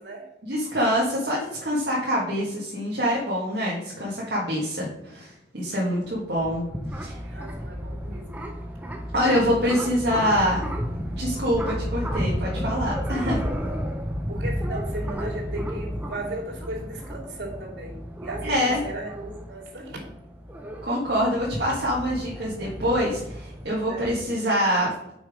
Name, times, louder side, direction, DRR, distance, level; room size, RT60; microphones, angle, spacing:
voice 1, 0.4-6.6 7.0-7.2 9.1-10.6 11.1-13.4 18.4-18.8 20.8-24.9, equal, 65° right, -6 dB, 1.7 m, -25 dB
sound 1, 6.0-24.2, equal, 10° right, 0.7 m, -32 dB
voice 2, 7.2-8.4 9.7-9.8 13.1-13.8 14.3-20.0 23.9-24.5, right 1 dB, 85° right, -3 dB, 2.7 m, -37 dB
6.1 x 5.2 x 4.9 m, 0.83 s
head